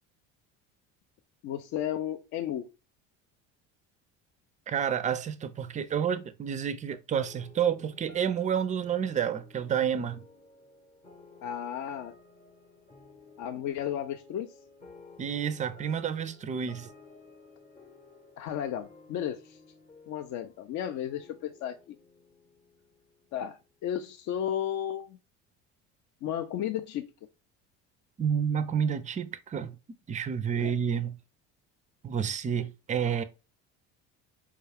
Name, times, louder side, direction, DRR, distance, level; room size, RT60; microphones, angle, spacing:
voice 1, 1.4-2.7 11.4-12.1 13.4-14.5 18.4-19.6 20.1-22.0 23.3-25.2 26.2-27.1 30.6-30.7, left 10 dB, 55° left, 0.5 m, -34 dB
voice 2, 4.7-10.2 15.2-16.9 28.2-29.8 30.1-31.2 32.0-33.2, right 8 dB, 20° right, 0.4 m, -29 dB
sound 1, 7.1-23.9, left 3 dB, 20° left, 0.8 m, -55 dB
4.6 x 2.3 x 3.3 m
supercardioid pair, 100°, 35 cm